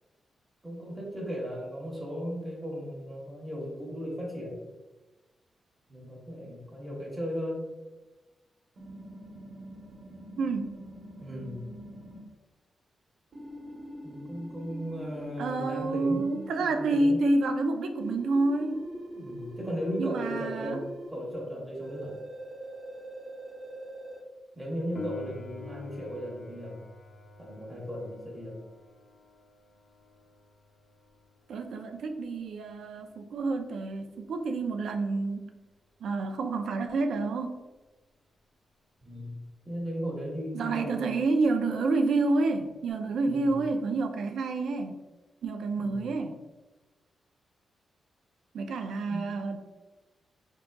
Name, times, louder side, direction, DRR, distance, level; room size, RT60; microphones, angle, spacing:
voice 1, 0.6-4.6 5.9-7.7 11.2-11.6 14.0-17.2 19.2-22.2 24.5-26.9 27.4-28.6 39.0-41.1 43.2-43.6 45.8-46.1 49.1-49.3, equal, 10° right, -3 dB, 0.9 m, -36 dB
sound 1, 8.8-12.2 13.3-16.8 18.0-21.1 21.8-24.2, right 1 dB, 55° right, 0.9 m, -43 dB
voice 2, 10.4-10.8 15.4-18.8 20.0-20.8 31.5-35.6 36.0-37.6 40.5-44.9 45.4-46.4 48.5-49.6, right 3 dB, 80° right, 6 dB, 0.4 m, -28 dB
Piano, 24.9-35.3 42.9-43.0, left 4 dB, 45° left, 0.6 m, -49 dB
3.8 x 3.6 x 2.2 m, 1.2 s
wide cardioid pair, 150°, 0 cm